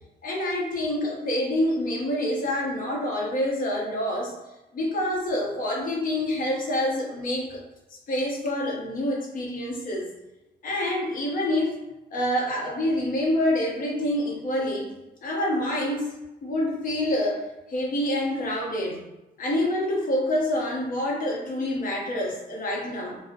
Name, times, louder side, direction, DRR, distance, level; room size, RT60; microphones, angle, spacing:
voice 1, 0.2-4.4 4.7-7.6 8.1-10.1 10.6-11.8 12.1-14.9 15.2-16.1 16.4-17.4 17.7-19.0 19.4-23.2, left 1 dB, 55° left, -2 dB, 0.7 m, -27 dB
2.6 x 2.0 x 2.5 m, 0.99 s
cardioid pair, 130°, 17 cm